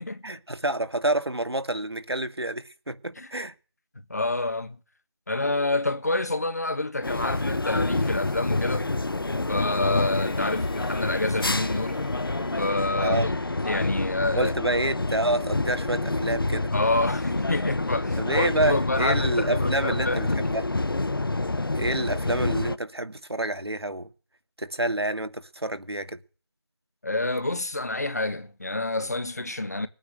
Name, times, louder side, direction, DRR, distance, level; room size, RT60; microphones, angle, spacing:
voice 1, 0.2-3.5 13.0-13.3 14.3-16.7 18.2-20.6 21.8-24.1 24.6-26.2, right 1 dB, 80° right, 2.3 m, -28 dB
voice 2, 4.1-4.8 5.3-8.9 9.5-12.0 12.6-13.3 13.6-14.5 16.7-20.6 27.0-29.9, left 2 dB, 40° left, 1.5 m, -28 dB
sound 1, 7.0-22.8, left 2 dB, 60° left, 0.7 m, -28 dB
Bowed string instrument, 9.9-14.2, left 3 dB, 15° left, 1.0 m, -48 dB
20.0 x 9.3 x 6.4 m
figure-of-eight pair, 170°, 13 cm